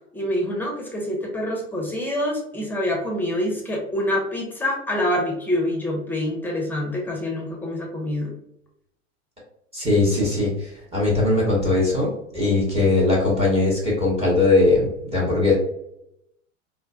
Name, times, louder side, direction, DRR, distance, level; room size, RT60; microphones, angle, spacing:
voice 1, 0.1-8.3, left 1 dB, 5° left, -1 dB, 0.7 m, -26 dB
voice 2, 9.7-15.5, left 2 dB, 15° right, -5 dB, 1.0 m, -20 dB
4.2 x 2.1 x 2.4 m, 0.77 s
figure-of-eight pair, 85°, 38 cm